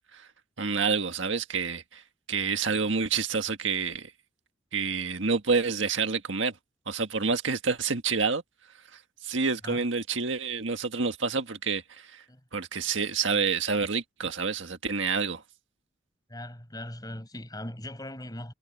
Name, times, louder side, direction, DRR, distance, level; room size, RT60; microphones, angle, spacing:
voice 1, 0.6-2.0 2.3-4.1 4.7-6.6 6.9-8.4 9.2-12.2 12.5-15.4, right 5 dB, 80° right, 1.7 m, -28 dB
voice 2, 16.3-18.5, left 1 dB, 20° left, 5.7 m, -39 dB
head